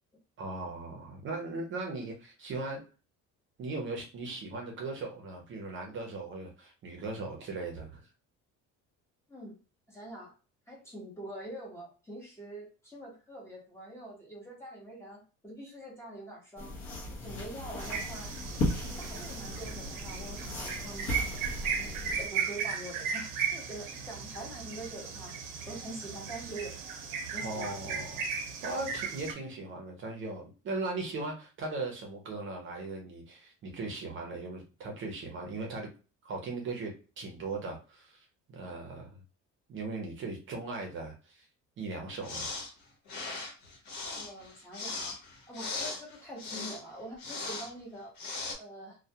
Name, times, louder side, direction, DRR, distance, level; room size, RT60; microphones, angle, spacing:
voice 1, 0.4-2.8 3.6-8.1 27.4-28.2 28.6-35.9 36.2-39.1 39.7-41.5 41.8-42.5, right 3 dB, 40° right, 1 dB, 0.6 m, -38 dB
voice 2, 9.9-10.3 10.7-16.7 17.1-18.3 18.8-21.1 21.5-25.4 25.7-26.8 27.3-28.1 44.1-45.2 45.5-48.1 48.6-49.0, right 1 dB, 10° left, -4 dB, 0.8 m, -45 dB
sound 1, 16.6-22.3, left 1 dB, 45° left, 0.8 m, -37 dB
sound 2, 17.8-29.3, right 6 dB, 90° right, 0.6 m, -36 dB
sound 3, 42.2-42.7 43.1-46.8 47.2-47.7 48.2-48.5, left 3 dB, 80° left, 1.0 m, -38 dB
2.2 x 2.1 x 2.7 m, 0.33 s
cardioid pair, 160°, 30 cm